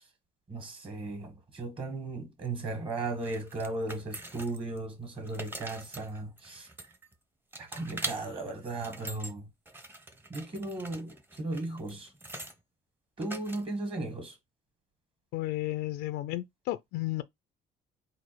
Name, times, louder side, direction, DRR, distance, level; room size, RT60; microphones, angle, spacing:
voice 1, 0.5-6.7 7.6-9.5 10.3-12.1 13.2-14.3, right 2 dB, 30° right, 1.6 m, -36 dB
sound 1, 3.2-4.8 5.1-7.1 7.5-8.2 8.6-9.3 9.6-12.5 13.2-13.9, right 2 dB, 10° right, 0.8 m, -43 dB
voice 2, 15.3-17.2, left 16 dB, 85° left, 0.4 m, -33 dB
4.1 x 2.4 x 4.5 m
cardioid pair, 110°, 17 cm